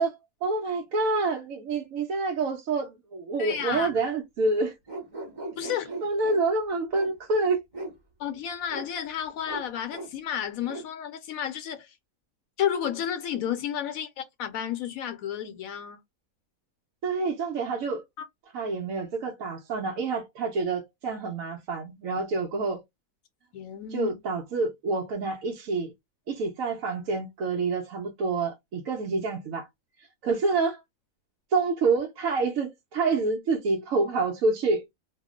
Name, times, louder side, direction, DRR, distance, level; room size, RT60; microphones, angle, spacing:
voice 1, 0.0-4.7 6.0-7.6 17.0-18.0 18.5-22.8 23.9-25.9 26.3-29.7 30.2-30.8 31.5-34.8, right 3 dB, 75° right, 1.1 m, -27 dB
voice 2, 3.4-3.9 5.6-5.9 8.2-11.9 12.6-16.0 18.2-18.3 23.5-24.1, left 9 dB, 75° left, 1.0 m, -32 dB
sound 1, 4.9-6.4 6.9-7.1 7.7-7.9 8.7-8.9 9.4-9.6 9.9-10.1 10.6-10.8, right 2 dB, 20° right, 1.0 m, -37 dB
2.8 x 2.0 x 3.5 m
omnidirectional pair, 1.5 m